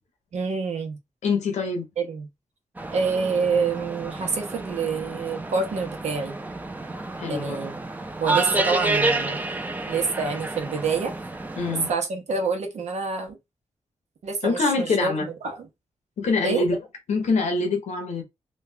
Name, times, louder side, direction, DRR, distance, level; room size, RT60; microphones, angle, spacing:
voice 1, 0.3-1.0 2.0-2.3 2.9-6.4 7.3-7.9 8.2-9.4 9.9-11.1 11.9-13.4 14.2-15.1 15.4-15.7 16.4-16.6, right 4 dB, 80° right, 1.1 m, -27 dB
voice 2, 1.2-1.8 7.2-7.6 11.6-11.9 14.4-15.3 16.2-16.8 17.1-18.2, left 3 dB, 90° left, 1.1 m, -24 dB
sound 1, 2.8-11.9, right 2 dB, 15° right, 0.6 m, -30 dB
3.2 x 2.4 x 3.4 m
cardioid pair, 80°, 11 cm